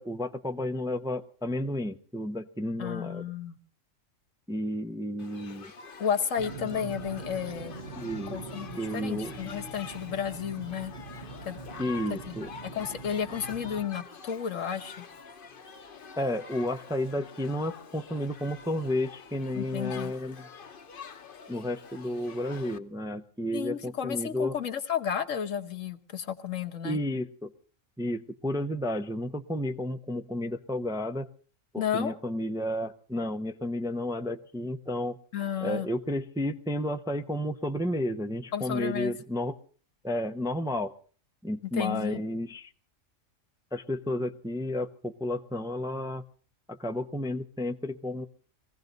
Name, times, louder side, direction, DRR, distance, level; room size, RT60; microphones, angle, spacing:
voice 1, 0.0-3.2 4.5-5.7 8.0-8.4 8.8-9.3 11.8-12.5 16.2-20.5 21.5-24.6 26.8-27.5 28.0-31.3 31.7-35.2 35.6-39.5 40.0-40.9 41.4-42.7 43.7-46.2 46.7-48.2, left 1 dB, 5° right, 7 dB, 0.6 m, -32 dB
voice 2, 2.8-3.6 6.0-7.8 8.3-10.9 11.4-11.6 12.1-12.4 12.7-15.0 19.5-20.1 23.5-27.0 31.8-32.1 35.3-35.9 38.5-39.1 41.7-42.2, left 8 dB, 70° left, 7 dB, 1.5 m, -32 dB
Shout / Human group actions, 5.2-22.8, left 6 dB, 45° left, 1.0 m, -47 dB
sound 1, 6.4-13.9, right 4 dB, 55° right, 1.5 m, -43 dB
22.0 x 16.0 x 4.0 m, 0.41 s
omnidirectional pair, 1.4 m